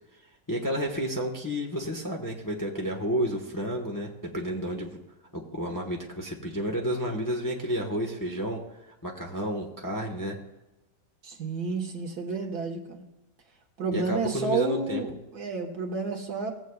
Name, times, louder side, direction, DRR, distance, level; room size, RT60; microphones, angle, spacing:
voice 1, 0.5-5.0 5.3-8.6 8.9-10.4 13.9-15.0, equal, 15° left, 0 dB, 1.0 m, -31 dB
voice 2, 11.2-13.1 13.8-16.5, right 4 dB, 70° right, 2 dB, 1.9 m, -31 dB
18.0 x 8.2 x 2.3 m, 1.0 s
omnidirectional pair, 1.8 m